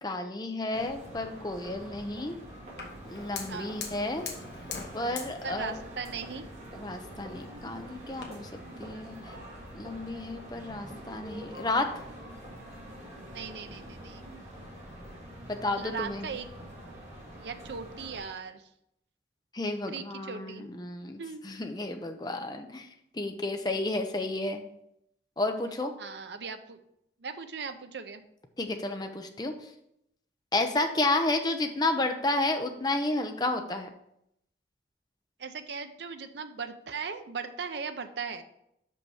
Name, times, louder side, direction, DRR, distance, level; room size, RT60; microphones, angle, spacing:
voice 1, 0.0-2.4 3.0-4.3 4.9-5.7 6.8-8.5 8.8-9.4 9.7-11.9 15.5-16.3 19.5-22.9 23.1-24.6 25.4-25.9 28.6-29.7 30.5-33.9, left 2 dB, 20° left, 5 dB, 0.6 m, -31 dB
sound 1, 0.7-18.2, equal, 40° right, 2.1 m, -45 dB
Fire, 2.8-8.2, left 5 dB, 70° left, 1.2 m, -44 dB
voice 2, 3.5-3.8 5.4-6.5 13.2-14.2 15.7-16.5 17.3-18.6 19.9-20.7 21.2-21.5 26.0-26.8 27.2-28.2 35.4-38.4, right 5 dB, 75° right, 9 dB, 0.6 m, -38 dB
5.6 x 5.4 x 4.8 m, 0.78 s
head